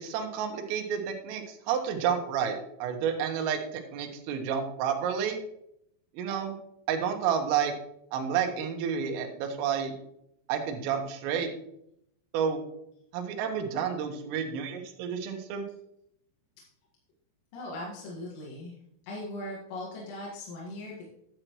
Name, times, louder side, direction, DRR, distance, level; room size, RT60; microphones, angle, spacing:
voice 1, 0.0-5.4 6.2-6.6 6.9-7.7 8.1-9.9 10.5-11.5 12.3-12.6 13.1-15.6, right 7 dB, 85° right, 4 dB, 3.7 m, -30 dB
voice 2, 17.5-18.7 19.1-21.1, left 1 dB, 80° left, -5 dB, 4.4 m, -39 dB
11.5 x 7.8 x 3.1 m, 0.76 s
omnidirectional pair, 5.8 m